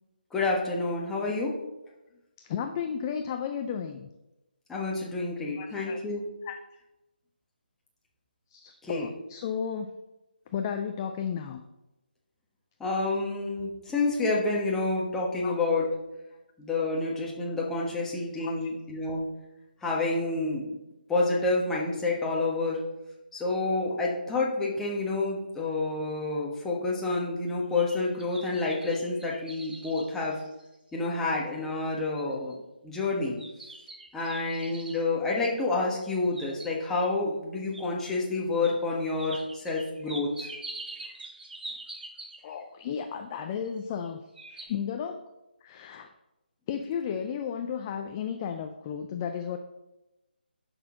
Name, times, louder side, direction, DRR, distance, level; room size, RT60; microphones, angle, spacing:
voice 1, 0.3-1.5 4.7-6.2 8.8-9.1 12.8-15.9 16.6-19.3 19.8-20.6 21.1-22.8 23.3-30.4 30.9-32.6 32.8-33.4 34.1-40.5, left 3 dB, 5° left, -4 dB, 1.3 m, -29 dB
voice 2, 2.4-4.1 5.6-6.0 6.4-6.6 8.5-9.9 10.5-11.6 15.4-15.6 18.4-18.7 42.4-44.2 44.5-45.2 45.6-46.1 46.7-49.6, left 7 dB, 20° left, 7 dB, 0.4 m, -33 dB
sound 1, 27.5-31.1 31.6-31.7 32.2-32.5 33.4-35.0 36.0-37.0 37.7-37.8 38.6-38.7 39.2-42.6 43.6-44.1 44.3-44.6, right 2 dB, 65° right, 2.4 m, -44 dB
10.5 x 6.2 x 3.8 m, 0.98 s
figure-of-eight pair, 155°, 6 cm